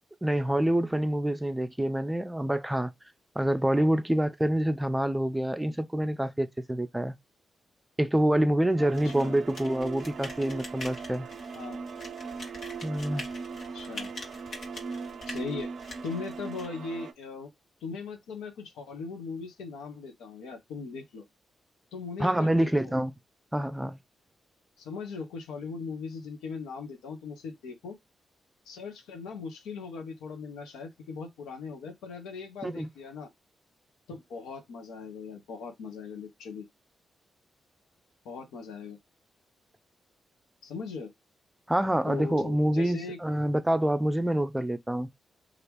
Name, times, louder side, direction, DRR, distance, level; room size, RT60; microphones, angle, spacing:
voice 1, 0.2-2.9 3.4-7.1 8.0-11.3 12.8-13.2 22.2-23.1 23.5-24.0 32.6-32.9 41.7-45.1, right 1 dB, 10° right, 0.5 m, -26 dB
sound 1, 8.8-17.1, right 5 dB, 65° right, 0.5 m, -39 dB
sound 2, 8.9-16.7, left 2 dB, 65° left, 1.3 m, -45 dB
voice 2, 9.0-9.4 11.5-11.8 13.7-14.1 15.3-15.7 16.0-17.5 17.8-21.2 21.9-22.9 24.8-28.0 28.7-33.3 34.1-36.7 38.2-39.0 40.6-41.1 42.1-43.2, left 5 dB, 80° left, 0.8 m, -39 dB
2.9 x 2.5 x 3.4 m
hypercardioid pair, 40°, 0 cm